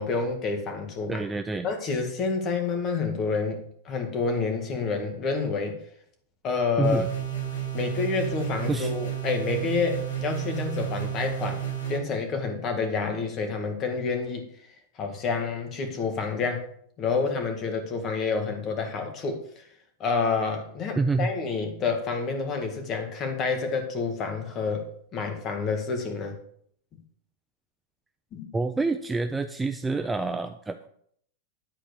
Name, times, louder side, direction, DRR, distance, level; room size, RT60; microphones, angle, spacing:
voice 1, 0.0-1.2 1.6-5.8 6.4-7.1 7.7-11.6 11.9-14.4 15.0-16.6 17.0-19.7 20.0-26.3 28.3-28.5, left 4 dB, 25° left, 5 dB, 1.7 m, -28 dB
voice 2, 1.1-1.7 6.8-7.1 8.7-8.9 21.0-21.3 28.5-30.9, right 3 dB, 5° right, 7 dB, 0.4 m, -27 dB
sound 1, 6.8-12.0, right 10 dB, 80° left, 4.8 m, -31 dB
10.5 x 4.4 x 6.7 m, 0.64 s
supercardioid pair, 155°, 0 cm